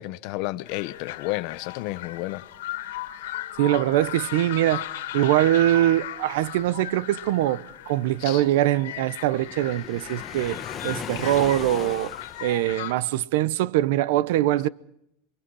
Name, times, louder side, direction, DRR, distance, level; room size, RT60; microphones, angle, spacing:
voice 1, 0.0-2.4 8.2-8.4, left 19 dB, 50° left, 0.8 m, -31 dB
sound 1, 0.7-12.9, left 14 dB, 85° left, 2.0 m, -37 dB
voice 2, 3.6-4.9 5.1-10.6 10.8-12.1 12.4-14.7, right 14 dB, 70° right, 0.8 m, -23 dB
Waves surf, 9.4-12.9, left 8 dB, 25° left, 1.4 m, -37 dB
28.0 x 23.5 x 4.8 m
supercardioid pair, 160°, 0 cm